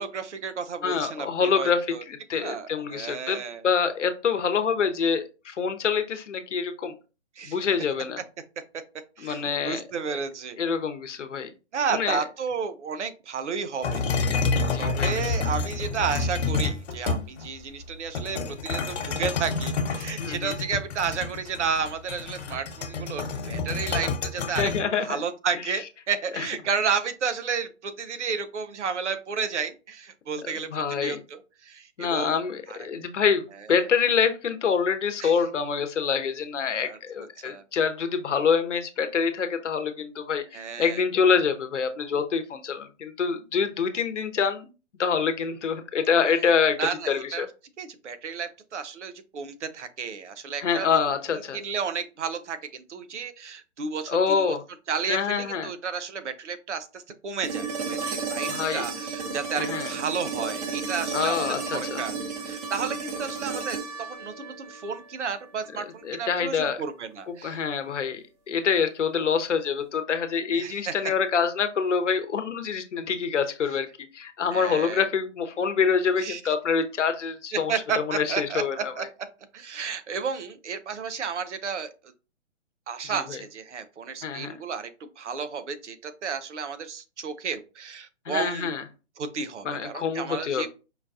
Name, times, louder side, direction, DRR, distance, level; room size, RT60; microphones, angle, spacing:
voice 1, 0.0-2.0 2.4-3.6 7.4-7.6 9.2-10.6 11.7-14.0 14.8-24.7 25.0-32.4 32.7-32.8 33.7-33.8 35.2-35.3 36.7-37.6 40.5-41.0 46.8-47.5 47.8-51.0 51.5-54.6 54.9-62.2 62.4-67.6 70.5-71.1 74.5-75.1 76.2-76.4 77.5-79.0 79.5-81.9 82.9-88.7 89.2-90.7, right 6 dB, 75° right, 10 dB, 0.8 m, -32 dB
voice 2, 0.8-1.8 2.1-6.9 7.5-8.2 9.2-9.8 10.6-11.5 11.9-12.2 14.6-15.1 20.2-20.6 24.6-25.2 25.7-25.8 26.4-26.5 30.4-31.2 32.0-44.7 45.0-46.8 47.1-47.5 50.6-51.6 54.1-54.6 55.1-55.7 58.5-58.8 59.5-59.9 61.1-62.0 66.0-66.8 67.4-73.9 74.1-78.9 83.1-83.4 84.2-84.6 88.3-88.8 89.6-90.7, left 6 dB, 80° left, 8 dB, 0.9 m, -26 dB
Metal rake across cobblestone paving, 13.8-17.5 18.2-24.8, left 4 dB, 60° left, 1.2 m, -28 dB
sound 1, 57.4-65.5 67.6-67.7, right 4 dB, 35° right, 0.9 m, -33 dB
5.1 x 2.3 x 2.5 m, 0.32 s
hypercardioid pair, 145°, 36 cm